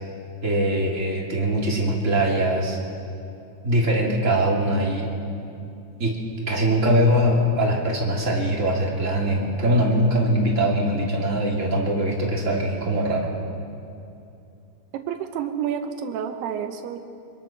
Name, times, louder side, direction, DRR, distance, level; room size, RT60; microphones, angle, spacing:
voice 1, 0.4-2.8 3.6-5.1 6.0-6.2 6.5-13.3, right 1 dB, 20° right, -2 dB, 2.7 m, -22 dB
voice 2, 14.9-17.0, right 8 dB, 90° right, 5 dB, 3.0 m, -29 dB
24.0 x 23.0 x 6.0 m, 2.6 s
omnidirectional pair, 4.5 m